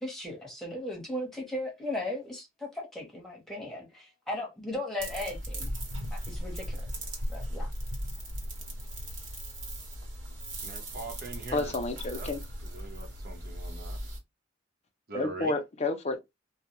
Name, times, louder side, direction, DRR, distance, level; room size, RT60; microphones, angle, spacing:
voice 1, 0.0-5.7 6.3-6.9 7.3-7.7, left 1 dB, ahead, 1.0 m, -37 dB
sound 1, 5.0-14.2, equal, 75° right, 1.1 m, -37 dB
voice 2, 10.6-11.7 12.1-12.3 12.6-14.1 15.1-15.5, right 3 dB, 50° right, 0.9 m, -42 dB
voice 3, 11.5-12.4 15.1-16.2, left 2 dB, 35° left, 0.6 m, -30 dB
2.2 x 2.2 x 2.9 m
head